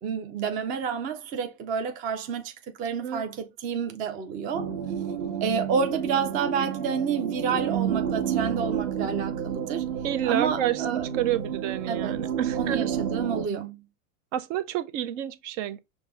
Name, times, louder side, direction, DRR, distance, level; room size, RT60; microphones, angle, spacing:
voice 1, 0.0-2.5 2.8-4.7 5.4-9.8 10.2-11.1 11.9-13.8, right 6 dB, 20° right, 0.3 m, -29 dB
sound 1, 4.5-13.4, right 8 dB, 45° right, 1.0 m, -30 dB
voice 2, 10.0-12.9 14.3-15.8, right 11 dB, 60° right, 0.6 m, -29 dB
5.2 x 2.0 x 3.4 m
supercardioid pair, 125°, 41 cm